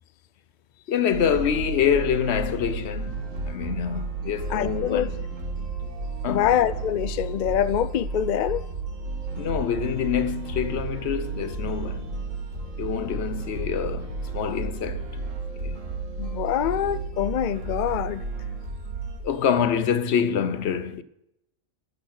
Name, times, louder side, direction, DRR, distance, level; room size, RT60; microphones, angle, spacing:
voice 1, 0.9-5.1 6.2-6.5 9.4-12.2 12.8-15.1 15.6-15.8 19.2-21.0, left 8 dB, 60° left, 0.9 m, -26 dB
sound 1, 1.1-19.2, right 3 dB, 70° right, 2.1 m, -33 dB
voice 2, 4.5-5.1 6.3-8.6 16.2-18.2, left 10 dB, 75° left, 0.4 m, -25 dB
13.0 x 8.6 x 6.4 m
omnidirectional pair, 1.4 m